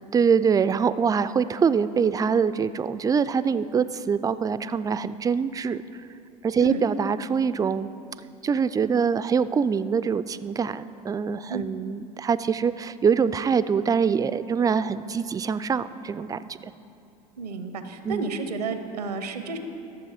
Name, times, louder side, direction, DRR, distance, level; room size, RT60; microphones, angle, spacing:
voice 1, 0.0-5.8 6.4-7.9 8.4-16.7 18.0-18.2, right 6 dB, 20° right, 14 dB, 0.3 m, -24 dB
voice 2, 17.4-19.6, right 4 dB, 90° right, 9 dB, 0.7 m, -31 dB
12.5 x 7.0 x 5.0 m, 2.8 s
hypercardioid pair, 75°, 20 cm